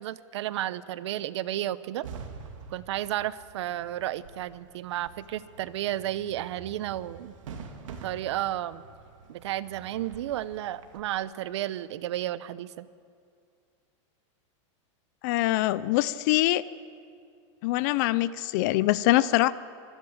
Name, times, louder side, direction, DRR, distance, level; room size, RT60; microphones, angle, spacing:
voice 1, 0.0-2.0 2.7-7.3 8.0-8.8 9.3-12.9, right 13 dB, 60° right, 17 dB, 0.8 m, -32 dB
sound 1, 2.0-11.0, right 5 dB, 85° right, 2.7 m, -46 dB
voice 2, 15.2-16.6 17.6-19.5, left 17 dB, 35° left, 18 dB, 0.5 m, -24 dB
25.0 x 12.5 x 8.7 m, 2.3 s
supercardioid pair, 170°, 16 cm